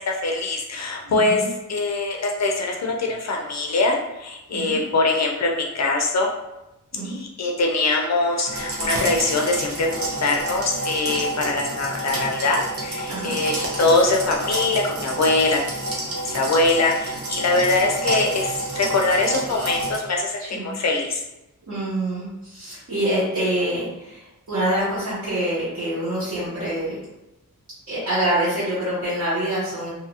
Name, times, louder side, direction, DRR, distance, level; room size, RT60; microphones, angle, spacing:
voice 1, 0.0-6.3 7.0-15.7 16.3-21.2, left 3 dB, 55° left, 1 dB, 0.5 m, -23 dB
voice 2, 1.0-1.5 4.5-4.8 6.9-7.1 13.1-13.3 20.4-20.7 21.7-27.0 27.9-29.9, right 1 dB, 60° right, -12 dB, 1.1 m, -26 dB
sound 1, 8.5-20.0, right 2 dB, 45° right, 0.6 m, -29 dB
2.6 x 2.4 x 2.7 m, 0.94 s
wide cardioid pair, 155°, 33 cm